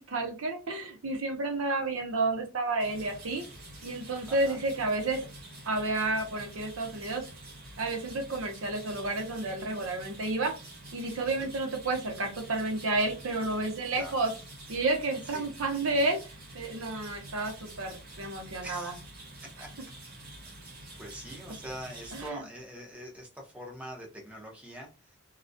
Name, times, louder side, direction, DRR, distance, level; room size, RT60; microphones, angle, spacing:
voice 1, 0.0-3.4 3.8-5.2 5.7-7.2 7.8-10.5 10.9-14.3 14.7-16.2 16.5-18.9 22.1-22.4, right 2 dB, 85° right, 3 dB, 0.7 m, -31 dB
sound 1, 2.8-22.3, right 1 dB, 45° right, 0.6 m, -47 dB
voice 2, 4.3-4.6 11.2-11.5 13.9-14.2 15.2-15.5 18.6-19.0 19.6-19.7 21.0-25.1, equal, 5° right, -1 dB, 0.6 m, -43 dB
2.3 x 2.1 x 2.6 m, 0.32 s
head